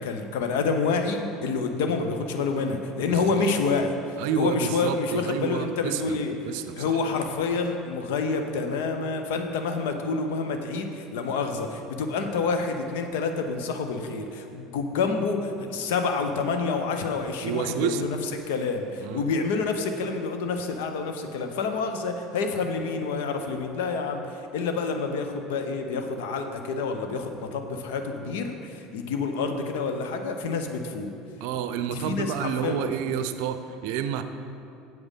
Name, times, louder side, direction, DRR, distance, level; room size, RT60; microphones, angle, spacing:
voice 1, 0.0-6.3 6.7-18.2 18.5-31.1 31.9-33.1, left 4 dB, 70° left, 6 dB, 0.8 m, -28 dB
voice 2, 3.1-3.6 4.2-7.0 17.4-18.1 19.0-19.2 31.4-34.2, right 8 dB, 65° right, 10 dB, 0.5 m, -30 dB
7.9 x 7.6 x 5.6 m, 2.6 s
figure-of-eight pair, 70°, 0 cm